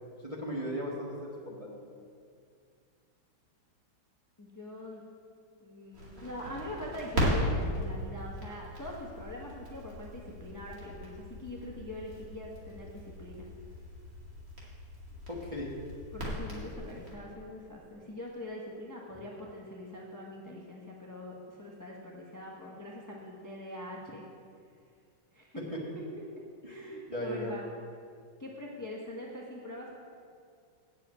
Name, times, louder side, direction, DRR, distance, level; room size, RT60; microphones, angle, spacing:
voice 1, 0.2-1.8 15.3-15.7 25.5-25.8 26.6-27.5, equal, 20° right, -4 dB, 1.1 m, -37 dB
voice 2, 4.4-5.0 5.6-13.5 16.1-24.2 25.3-25.6 26.7-27.6 28.4-29.9, left 1 dB, 15° left, -3 dB, 0.7 m, -43 dB
Crackle, 5.9-17.1, equal, 40° right, 2.5 m, -37 dB
7.5 x 7.5 x 8.3 m, 2.3 s
omnidirectional pair, 2.2 m